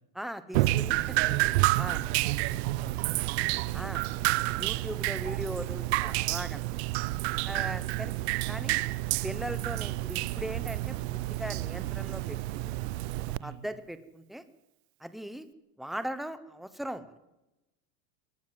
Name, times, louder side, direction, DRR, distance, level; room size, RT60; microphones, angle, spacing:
voice 1, 0.1-1.1 1.8-2.0 3.7-4.1 4.6-6.8 7.4-8.1 8.5-8.8 9.2-12.8 13.4-14.4 15.0-15.5 15.8-17.1, equal, ahead, 12 dB, 0.8 m, -39 dB
Drip, 0.5-13.4, right 18 dB, 55° right, 0.7 m, -29 dB
voice 2, 1.0-3.6 7.5-7.8 13.4-13.6, right 8 dB, 25° right, 10 dB, 2.0 m, -43 dB
22.0 x 19.5 x 7.5 m, 0.95 s
supercardioid pair, 180°, 39 cm